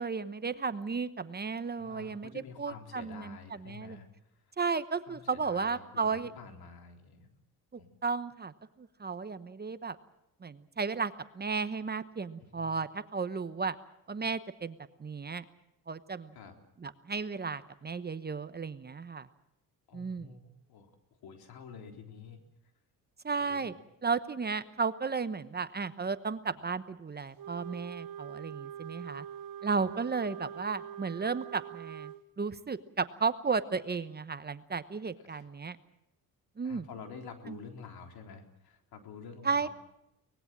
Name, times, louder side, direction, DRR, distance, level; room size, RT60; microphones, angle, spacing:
voice 1, 0.0-2.3 2.6-4.0 4.6-6.3 7.7-10.0 10.4-13.7 14.1-15.4 15.9-16.3 16.8-19.3 19.9-20.3 23.2-23.7 24.0-29.3 29.6-35.8 36.6-36.9 37.5-37.6 39.4-39.7, right 5 dB, 25° right, 12 dB, 1.1 m, -34 dB
voice 2, 1.8-4.1 5.1-7.3 7.8-7.9 12.6-12.7 16.3-16.5 19.9-22.4 23.4-23.7 29.8-29.9 35.2-35.5 36.6-39.7, left 5 dB, 75° left, 4 dB, 3.8 m, -49 dB
Wind instrument woodwind instrument, 27.4-32.2, right 9 dB, 65° right, 1.2 m, -44 dB
24.5 x 20.0 x 7.5 m, 0.83 s
cardioid pair, 95°, 37 cm